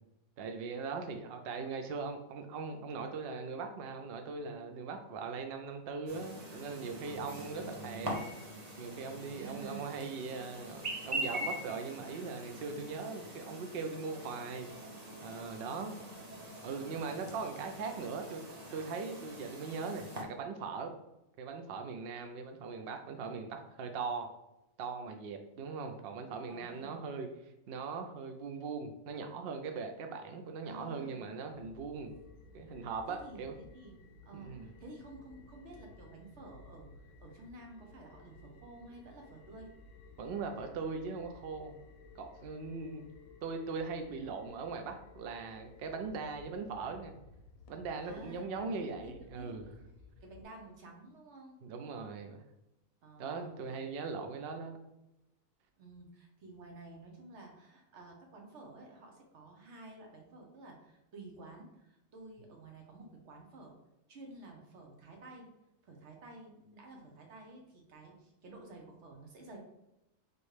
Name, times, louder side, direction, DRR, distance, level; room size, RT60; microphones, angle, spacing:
voice 1, 0.4-8.3 8.8-14.7 15.2-16.1 16.6-20.9 21.4-24.3 24.8-27.3 27.7-32.1 32.5-33.6 34.3-34.7 40.2-41.8 42.1-43.0 43.4-47.1 47.7-49.8 51.6-52.4 53.2-54.8, right 4 dB, 85° right, 5 dB, 0.5 m, -40 dB
Chirp tweet, 6.1-20.2, equal, 35° right, 0.6 m, -43 dB
voice 2, 7.0-7.6 9.4-9.9 15.6-16.0 26.5-27.1 30.6-31.2 33.1-34.0 34.2-39.7 48.0-49.5 50.2-51.6 53.0-53.7 55.8-63.8 64.1-65.5 65.8-69.6, right 2 dB, 55° right, 2 dB, 1.1 m, -52 dB
sound 1, 31.5-50.4, left 3 dB, 70° left, 0.9 m, -57 dB
4.4 x 3.1 x 3.2 m, 0.90 s
omnidirectional pair, 1.6 m